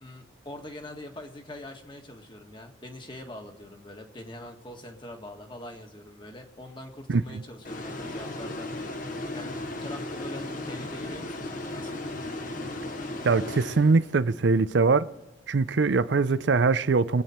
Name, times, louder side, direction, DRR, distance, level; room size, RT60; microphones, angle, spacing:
voice 1, 0.0-12.0, left 1 dB, 25° left, 1.8 m, -43 dB
sound 1, 7.6-14.3, left 1 dB, 45° left, 1.5 m, -36 dB
voice 2, 13.2-15.1 15.5-17.2, right 4 dB, 65° right, 0.5 m, -22 dB
25.0 x 9.2 x 4.4 m
head